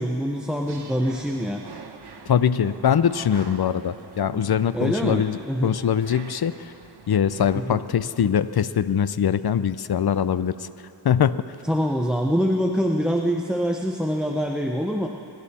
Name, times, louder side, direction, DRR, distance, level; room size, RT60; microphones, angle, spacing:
voice 1, 0.0-1.6 4.7-5.8 7.5-7.8 11.6-15.1, equal, ahead, 2 dB, 0.7 m, -25 dB
sound 1, 0.7-7.7, right 5 dB, 60° right, 1.0 m, -45 dB
voice 2, 2.3-6.7 7.1-10.5 11.0-11.4, left 8 dB, 60° left, 15 dB, 0.6 m, -22 dB
25.5 x 11.0 x 4.3 m, 2.8 s
wide cardioid pair, 60°, 44 cm